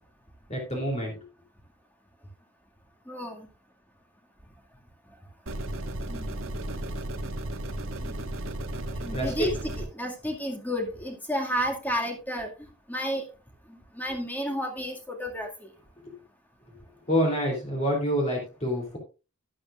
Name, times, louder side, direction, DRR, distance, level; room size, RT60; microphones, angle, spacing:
voice 1, 0.5-1.2 9.1-9.5 17.1-19.0, equal, 30° left, -1 dB, 3.2 m, -27 dB
voice 2, 3.1-3.5 6.1-6.4 8.0-8.2 8.9-13.3 13.7-15.7, equal, 10° left, 2 dB, 2.1 m, -32 dB
sound 1, 5.5-9.9, right 1 dB, 75° right, 1.5 m, -34 dB
12.0 x 11.5 x 2.5 m, 0.31 s
head